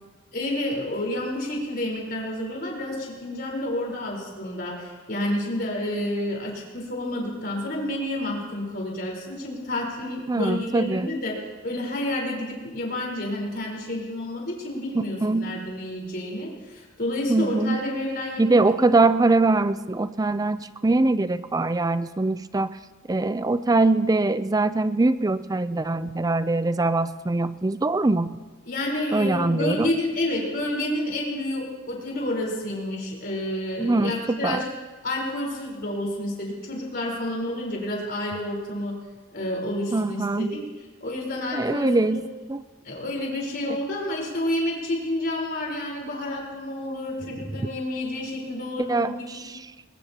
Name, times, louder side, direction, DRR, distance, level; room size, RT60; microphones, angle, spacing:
voice 1, 0.3-11.3 11.6-18.9 28.7-34.7 35.0-38.9 39.3-40.6 41.0-42.2 42.8-49.5, left 1 dB, 45° left, -2 dB, 4.2 m, -29 dB
voice 2, 10.3-11.1 14.9-15.6 17.3-17.9 18.4-22.7 23.1-28.3 29.1-30.0 33.8-34.6 39.9-40.6 41.5-42.2 42.5-42.6 43.7-43.8 47.5-47.6 48.9-49.7, right 2 dB, 20° right, 13 dB, 0.4 m, -23 dB
21.5 x 20.5 x 2.9 m, 1.3 s
head